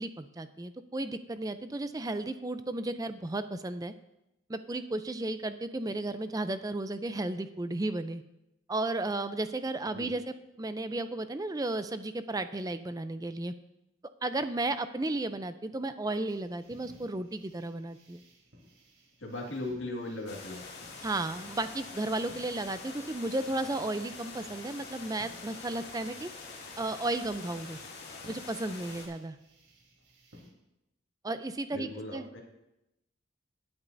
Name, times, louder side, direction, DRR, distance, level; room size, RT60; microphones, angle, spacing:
voice 1, 0.0-3.9 4.5-8.2 8.7-13.5 14.2-18.2 21.0-26.3 26.8-27.8 28.3-29.4 31.2-32.3, right 2 dB, 20° right, 11 dB, 0.5 m, -34 dB
sound 1, 16.3-30.5, equal, 85° right, 3.4 m, -59 dB
voice 2, 19.2-20.6 31.7-32.4, left 2 dB, 70° left, 0 dB, 1.9 m, -38 dB
sound 2, 20.3-29.1, left 4 dB, 55° left, 2.5 m, -45 dB
19.0 x 8.8 x 2.6 m, 0.90 s
head